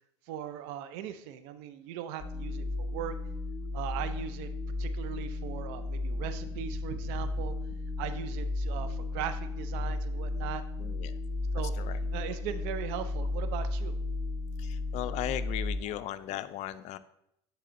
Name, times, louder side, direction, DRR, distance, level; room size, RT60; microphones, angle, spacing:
voice 1, 0.3-3.1 3.7-4.5 4.8-7.5 8.0-10.6 11.5-11.7 12.1-13.9, right 10 dB, 70° right, 11 dB, 0.5 m, -39 dB
sound 1, 2.2-15.8, left 2 dB, 20° left, 0.9 m, -34 dB
voice 2, 10.8-11.2 11.5-12.0 14.6-17.0, left 12 dB, 55° left, 14 dB, 0.4 m, -37 dB
10.0 x 4.2 x 2.6 m, 0.78 s
hypercardioid pair, 85°, 14 cm